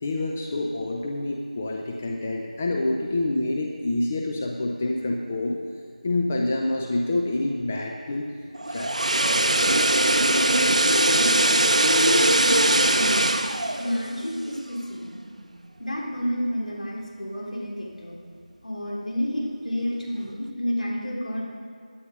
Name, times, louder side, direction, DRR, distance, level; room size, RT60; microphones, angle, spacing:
voice 1, 0.0-5.6 6.0-8.3 8.7-8.9, left 2 dB, 15° left, 1 dB, 0.3 m, -27 dB
sound 1, 8.6-14.8 15.1-15.3, right 1 dB, 60° right, 0.8 m, -21 dB
voice 2, 10.2-13.5 13.7-15.1 15.8-18.2 18.6-21.4, equal, 65° left, -3 dB, 3.5 m, -29 dB
17.0 x 9.9 x 5.2 m, 2.4 s
figure-of-eight pair, 170°, 4 cm